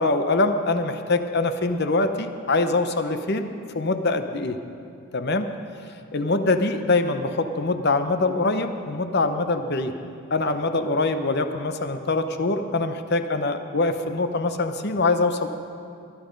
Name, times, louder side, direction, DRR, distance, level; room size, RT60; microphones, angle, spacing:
voice 1, 0.0-3.5 3.7-4.6 5.1-5.5 6.1-9.9 10.3-15.5, left 3 dB, 50° left, 8 dB, 0.8 m, -23 dB
20.0 x 11.5 x 5.2 m, 2.5 s
head